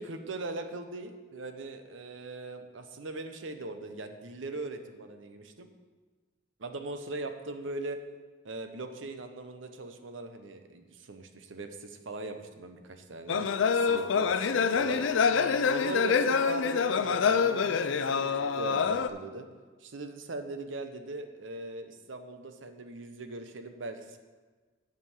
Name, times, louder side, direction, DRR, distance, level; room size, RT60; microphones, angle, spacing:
voice 1, 0.0-5.7 6.6-8.0 8.4-13.5 13.7-15.0 15.7-19.5 19.8-24.2, right 2 dB, 75° right, 7 dB, 0.8 m, -40 dB
sound 1, 13.3-19.1, left 6 dB, 75° left, 0.4 m, -26 dB
8.3 x 5.1 x 7.3 m, 1.4 s
head